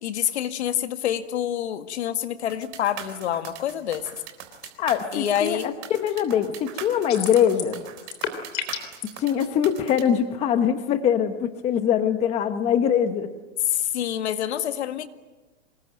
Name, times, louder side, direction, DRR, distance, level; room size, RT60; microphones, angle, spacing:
voice 1, 0.0-4.1 5.1-5.7 13.7-15.1, left 10 dB, 65° left, 9 dB, 1.9 m, -27 dB
sound 1, 2.5-10.0, right 10 dB, 30° right, 3.7 m, -40 dB
voice 2, 4.8-7.8 9.2-13.3, left 9 dB, 15° left, 8 dB, 1.1 m, -23 dB
sound 2, 7.1-7.8 8.0-9.1, left 10 dB, 35° left, 3.5 m, -30 dB
26.5 x 21.5 x 9.1 m, 1.2 s
hypercardioid pair, 160°, 36 cm